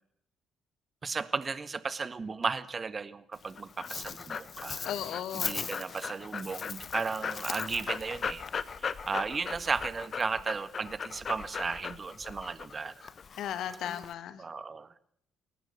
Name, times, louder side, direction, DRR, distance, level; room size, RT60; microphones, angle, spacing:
voice 1, 1.0-4.9 5.3-8.5 8.8-12.9 14.4-15.0, right 4 dB, 35° right, 14 dB, 1.5 m, -35 dB
Dog, 3.3-14.1, left 6 dB, 45° left, 1.2 m, -38 dB
voice 2, 4.8-5.5 13.4-14.4, left 10 dB, 60° left, 13 dB, 1.5 m, -36 dB
22.5 x 19.0 x 6.7 m, 0.66 s
figure-of-eight pair, 45°, 0 cm